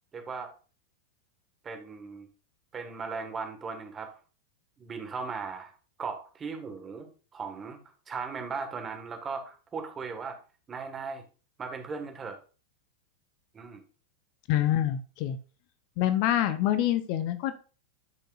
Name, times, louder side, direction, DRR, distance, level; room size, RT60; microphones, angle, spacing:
voice 1, 0.1-0.5 1.6-2.3 2.7-4.2 4.8-5.7 6.0-7.8 8.1-10.4 10.7-11.2 11.6-12.4 13.5-13.8, right 5 dB, 20° right, 5 dB, 1.6 m, -37 dB
voice 2, 14.5-15.4 16.0-17.5, left 12 dB, 45° left, 11 dB, 0.7 m, -26 dB
12.5 x 5.3 x 2.5 m, 0.36 s
figure-of-eight pair, 90°, 0 cm